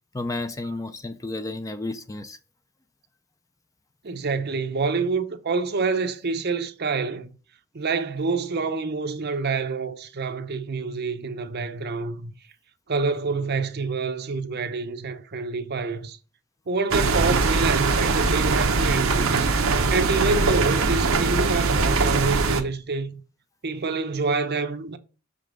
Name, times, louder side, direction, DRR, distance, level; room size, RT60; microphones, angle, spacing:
voice 1, 0.1-2.4, left 2 dB, 15° left, 0.5 m, -32 dB
voice 2, 4.0-7.3 7.7-12.3 12.9-16.2 16.7-19.5 19.9-23.2 23.6-25.0, right 4 dB, 50° right, 0.7 m, -27 dB
sound 1, 16.9-22.6, right 3 dB, 80° right, 0.9 m, -22 dB
6.6 x 5.3 x 3.8 m
head